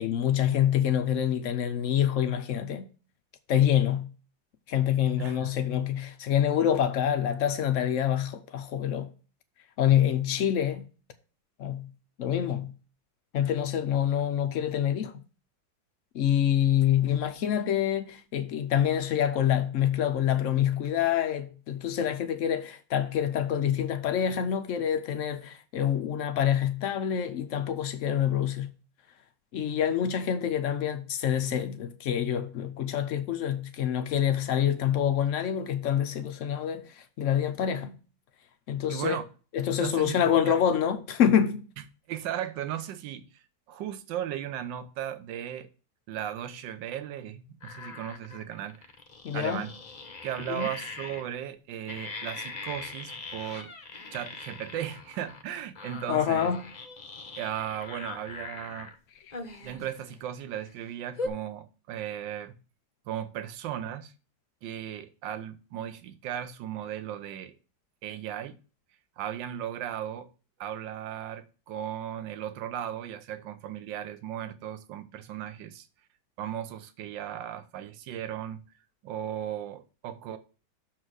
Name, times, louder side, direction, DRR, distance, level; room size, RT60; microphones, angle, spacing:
voice 1, 0.0-2.9 3.5-4.1 4.7-9.1 9.8-10.9 11.6-11.9 12.2-12.7 13.3-15.1 16.1-28.7 29.5-38.0 38.7-39.2 39.5-41.6 49.2-49.7 50.5-50.7 56.1-56.7, left 9 dB, 80° left, 0.6 m, -26 dB
voice 2, 5.2-5.5 38.9-39.2 39.8-40.6 41.8-45.7 46.1-48.9 49.3-49.7 50.2-53.7 54.1-56.5 57.4-58.9 59.6-62.6 63.1-64.1 64.6-67.5 68.0-68.6 69.2-70.3 70.6-75.9 76.4-78.6 79.0-80.4, right 10 dB, 75° right, 1.4 m, -36 dB
sound 1, 47.6-51.3 51.9-55.4 55.8-58.9 59.3-60.1 60.6-60.7 61.1-61.3, left 3 dB, 40° left, 0.5 m, -41 dB
6.5 x 4.5 x 6.2 m
omnidirectional pair, 2.1 m